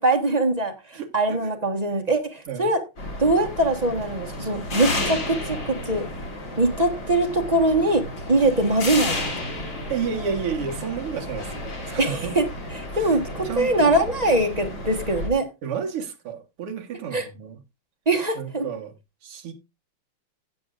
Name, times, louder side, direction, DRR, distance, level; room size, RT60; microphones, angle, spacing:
voice 1, 0.0-2.8 3.2-6.0 6.6-8.0 8.3-9.1 12.0-12.4 12.7-15.5 17.1-17.3 18.1-18.6, right 2 dB, 25° right, 1.1 m, -22 dB
voice 2, 0.9-1.5 2.5-2.7 9.9-12.4 12.9-13.2 13.4-14.0 15.6-17.6 18.4-18.9 19.2-19.5, right 6 dB, 85° right, 2.5 m, -31 dB
sound 1, 3.0-15.3, left 1 dB, 55° left, 3.9 m, -32 dB
16.5 x 7.8 x 2.5 m
omnidirectional pair, 2.4 m